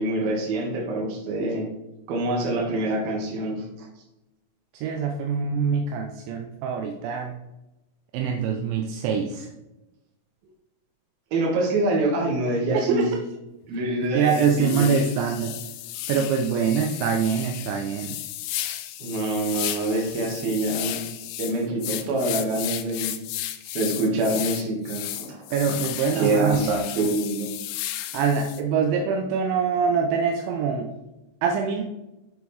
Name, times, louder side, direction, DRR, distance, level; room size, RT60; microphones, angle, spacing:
voice 1, 0.0-1.7 2.1-3.9 11.3-13.1 13.7-14.9 19.0-21.0 21.4-23.2 23.7-25.4 25.7-25.8 26.1-27.5, right 2 dB, 60° right, 0 dB, 3.1 m, -25 dB
voice 2, 4.7-7.3 8.1-9.5 12.7-13.2 14.1-15.5 16.1-18.2 25.5-26.7 28.1-30.9 31.4-31.8, right 6 dB, 85° right, 3 dB, 3.0 m, -24 dB
sound 1, 13.6-13.8 14.2-28.6, left 13 dB, 85° left, 2.9 m, -34 dB
7.8 x 7.1 x 3.2 m, 0.98 s
omnidirectional pair, 5.3 m